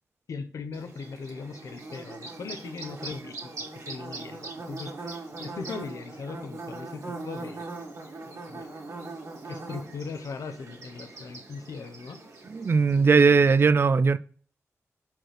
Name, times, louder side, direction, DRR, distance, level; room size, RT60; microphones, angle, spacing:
voice 1, 0.3-3.5 3.9-7.7 8.5-8.7 9.5-12.2, left 4 dB, 85° left, 0.8 m, -39 dB
Bird / Buzz, 0.7-13.6, right 3 dB, 70° right, 1.8 m, -41 dB
voice 2, 12.5-14.2, right 5 dB, 45° right, 0.4 m, -19 dB
6.0 x 4.6 x 5.0 m
wide cardioid pair, 105°, 5 cm